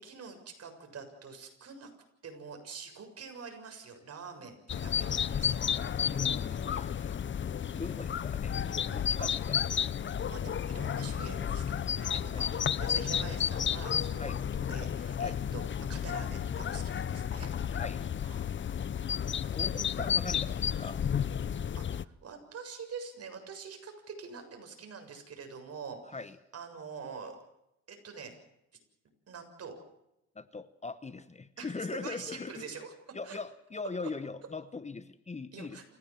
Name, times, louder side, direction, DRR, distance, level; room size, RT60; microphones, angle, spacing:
voice 1, 0.0-1.9 2.2-6.1 8.8-9.3 10.3-15.6 15.9-17.5 18.2-18.5 19.4-19.5 21.8-26.0 26.5-27.4 27.9-28.3 29.3-29.7 31.0-31.1 31.6-32.9 33.2-33.4 35.5-35.8, right 5 dB, 55° right, 5 dB, 7.2 m, -45 dB
sound 1, 4.7-22.0, left 8 dB, 40° left, 0.7 m, -32 dB
voice 2, 6.0-9.7 12.3-12.5 14.2-14.4 15.2-15.4 17.7-18.1 19.5-21.0 26.1-26.3 30.3-32.6 33.1-35.8, left 4 dB, 25° left, 13 dB, 1.1 m, -41 dB
28.5 x 16.0 x 7.6 m, 0.86 s
cardioid pair, 90°, 30 cm